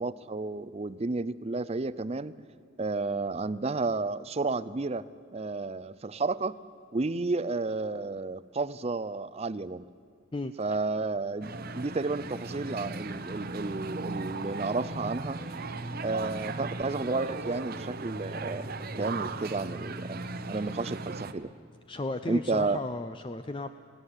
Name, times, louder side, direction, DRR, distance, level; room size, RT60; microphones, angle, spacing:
voice 1, 0.0-2.3 2.8-5.0 5.3-6.6 6.9-9.8 10.6-15.4 16.0-18.7 19.0-20.2 20.5-21.5 22.3-22.8, right 3 dB, 30° right, 16 dB, 0.5 m, -31 dB
sound 1, 11.4-21.3, right 3 dB, 45° right, 0.9 m, -37 dB
Speech synthesizer, 13.7-16.7, right 1 dB, ahead, 1.8 m, -53 dB
voice 2, 21.9-23.7, left 2 dB, 25° left, 9 dB, 0.5 m, -34 dB
19.0 x 16.5 x 9.8 m, 2.3 s
head